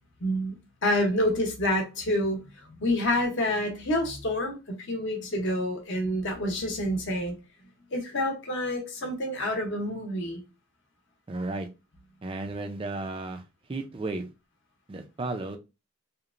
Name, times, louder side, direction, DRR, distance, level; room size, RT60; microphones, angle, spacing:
voice 1, 0.2-0.6 0.8-2.4 2.7-7.4 7.9-10.4, left 1 dB, 55° left, 0.8 m, -28 dB
voice 2, 11.3-11.7 12.2-13.4 13.7-14.3 14.9-15.6, right 2 dB, 25° right, 0.3 m, -33 dB
2.9 x 2.0 x 2.4 m
head